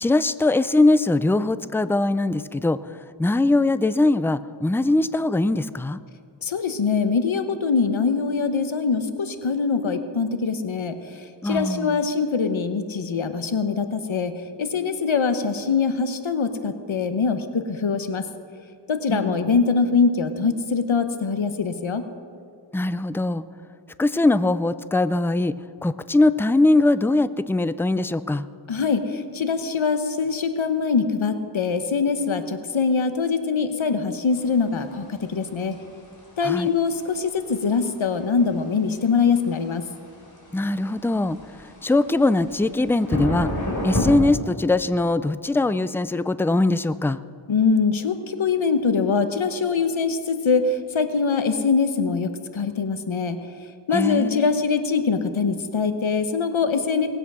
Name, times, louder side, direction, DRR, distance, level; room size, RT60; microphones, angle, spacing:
voice 1, 0.0-2.8 3.2-6.0 11.4-12.0 19.1-19.5 22.7-23.4 24.0-25.6 25.8-28.5 36.4-36.7 40.5-43.6 43.8-47.2 53.9-54.5, left 2 dB, 5° left, 14 dB, 0.3 m, -21 dB
voice 2, 6.4-18.2 18.9-22.1 28.7-35.8 36.4-39.9 47.5-53.4 53.9-57.1, left 5 dB, 80° left, 9 dB, 1.0 m, -23 dB
sound 1, 34.3-44.1, left 1 dB, 40° left, 3.5 m, -32 dB
19.0 x 8.0 x 6.1 m, 2.3 s
wide cardioid pair, 55°, 47 cm